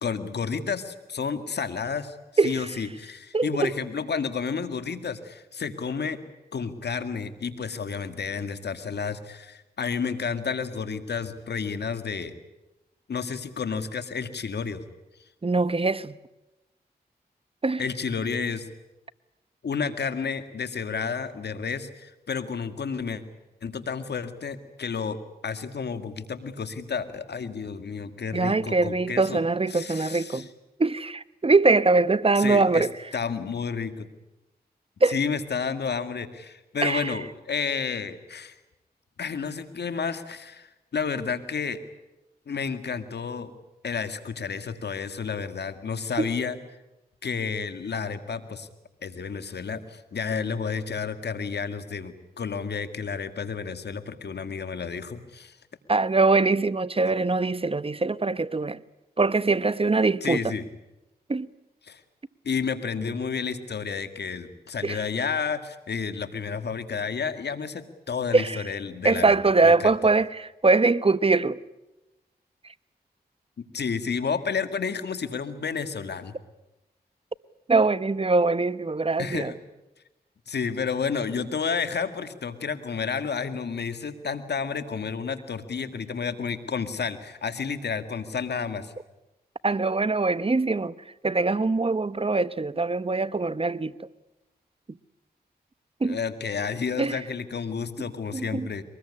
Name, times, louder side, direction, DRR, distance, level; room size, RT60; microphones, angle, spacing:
voice 1, 0.0-2.2 2.4-6.2 6.5-12.3 13.1-14.8 17.8-18.7 19.6-23.2 23.6-25.2 25.4-29.4 29.7-30.4 32.4-32.9 33.1-34.1 35.1-38.5 39.2-41.8 42.5-43.5 43.8-46.6 47.2-48.7 49.0-55.6 60.2-60.6 61.8-62.0 62.4-69.4 69.6-69.9 73.6-76.3 79.2-79.5 80.5-88.9 96.0-98.8, left 5 dB, 75° left, 2.0 m, -31 dB
voice 2, 2.4-2.7 3.3-3.7 15.4-16.2 17.6-17.8 28.3-30.5 30.8-32.9 35.0-35.2 36.8-37.2 46.2-46.3 55.9-58.8 59.2-60.5 61.3-61.5 64.8-65.0 68.3-68.6 69.0-71.6 77.7-79.5 89.6-91.0 91.2-94.1 96.0-96.2 97.0-97.2 98.3-98.7, right 3 dB, 35° right, 1.0 m, -23 dB
23.5 x 20.5 x 9.8 m
cardioid pair, 45°, 17 cm